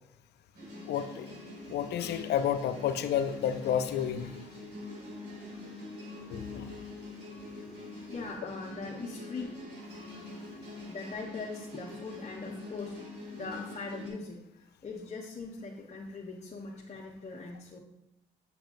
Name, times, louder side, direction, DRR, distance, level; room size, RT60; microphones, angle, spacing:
sound 1, 0.5-14.1, left 2 dB, 70° right, 2.5 m, -44 dB
voice 1, 0.9-1.3 1.7-4.3 6.3-6.7, left 9 dB, 70° left, 10 dB, 0.5 m, -30 dB
voice 2, 8.1-9.5 10.9-17.8, left 3 dB, 40° left, -2 dB, 1.0 m, -41 dB
7.1 x 5.9 x 2.6 m, 0.83 s
supercardioid pair, 55°, 18 cm